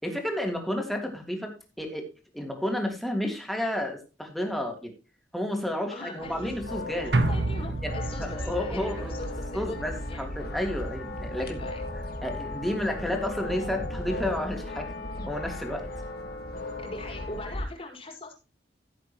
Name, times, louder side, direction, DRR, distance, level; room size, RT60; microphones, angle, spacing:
voice 1, 0.0-2.1 2.3-4.9 5.3-7.1 7.8-7.9 8.2-9.1 9.5-11.7 12.2-15.9, left 1 dB, ahead, 2 dB, 3.2 m, -31 dB
voice 2, 5.9-6.6 7.3-10.2 11.4-11.8 16.8-18.3, left 2 dB, 35° left, 0 dB, 4.9 m, -41 dB
sound 1, 6.2-17.6, left 1 dB, 60° left, 2.0 m, -36 dB
sound 2, 7.1-11.6 11.9-12.0, right 2 dB, 70° right, 1.7 m, -31 dB
16.0 x 8.3 x 3.0 m, 0.32 s
head